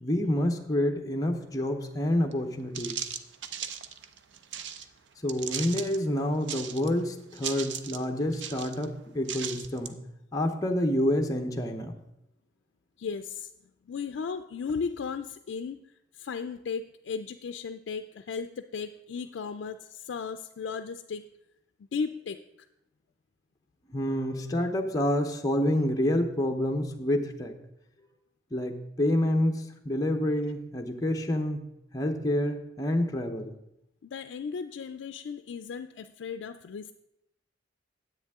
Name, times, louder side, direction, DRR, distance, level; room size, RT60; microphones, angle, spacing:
voice 1, 0.0-3.0 5.2-10.0 10.3-11.9 23.9-27.5 28.5-31.6 31.9-33.5, left 1 dB, 20° left, 2 dB, 0.7 m, -28 dB
walking slow on stones, 2.3-2.4 2.7-4.9 5.3-6.0 6.4-7.0 7.3-8.0 8.3-8.8 9.2-9.9, right 8 dB, 75° right, 0.6 m, -37 dB
voice 2, 13.0-13.5 13.9-15.9 16.1-21.3 21.9-22.4 34.0-36.9, left 5 dB, 80° left, 8 dB, 0.4 m, -35 dB
10.0 x 8.1 x 3.6 m, 0.82 s
head